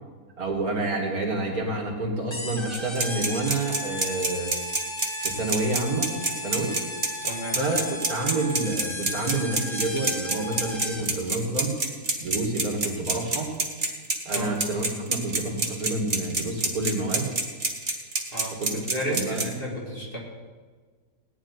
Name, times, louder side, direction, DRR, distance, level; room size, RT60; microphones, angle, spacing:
voice 1, 0.4-4.5 5.2-6.7 7.5-7.8 8.1-11.8 12.2-13.5 14.2-17.3 18.6-19.4, right 2 dB, 60° right, 0 dB, 2.9 m, -28 dB
sound 1, 2.3-11.2, left 1 dB, 20° left, 1.4 m, -36 dB
sound 2, 2.7-19.4, right 2 dB, 30° right, 1.8 m, -26 dB
voice 2, 7.2-7.6 14.3-14.5 18.3-20.2, equal, 35° left, -3 dB, 3.0 m, -33 dB
17.5 x 6.0 x 9.9 m, 1.5 s
omnidirectional pair, 1.7 m